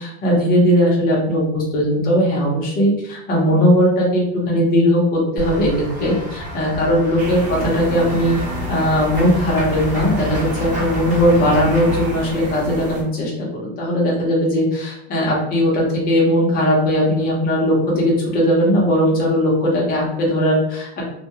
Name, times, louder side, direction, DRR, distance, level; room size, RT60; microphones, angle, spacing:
voice 1, 0.0-8.4 8.7-21.0, equal, 30° left, -3 dB, 0.7 m, -18 dB
Run / Walk footsteps / Bell, 5.4-12.1, left 2 dB, 20° right, 1.2 m, -29 dB
sound 1, 7.2-13.0, right 1 dB, 75° right, 0.8 m, -31 dB
2.3 x 2.2 x 2.7 m, 0.78 s
cardioid pair, 160°, 32 cm